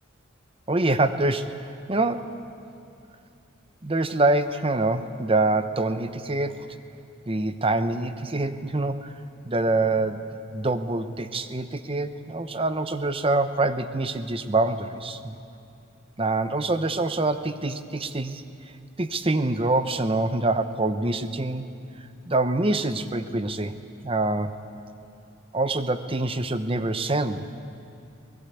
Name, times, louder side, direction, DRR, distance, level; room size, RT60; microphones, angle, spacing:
voice 1, 0.7-2.3 3.8-6.8 7.3-9.2 9.4-15.4 16.2-18.4 19.0-21.6 22.3-23.7 24.0-24.6 25.5-27.5, right 2 dB, 25° right, 10 dB, 0.9 m, -25 dB
24.0 x 20.0 x 8.4 m, 2.6 s
head